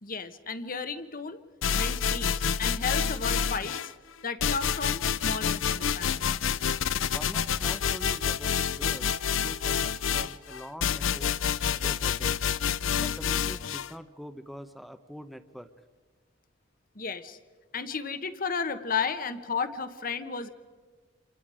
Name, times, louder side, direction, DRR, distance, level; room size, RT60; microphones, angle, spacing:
voice 1, 0.0-1.4 1.7-3.9 4.2-6.3 16.9-17.4 17.7-20.5, left 5 dB, 45° left, 10 dB, 1.2 m, -33 dB
sound 1, 1.6-3.9 4.4-13.9, left 7 dB, 80° left, 0.6 m, -28 dB
voice 2, 7.1-11.3 11.7-12.4 12.9-15.7, equal, ahead, 9 dB, 0.9 m, -44 dB
28.0 x 27.5 x 5.0 m, 1.5 s
head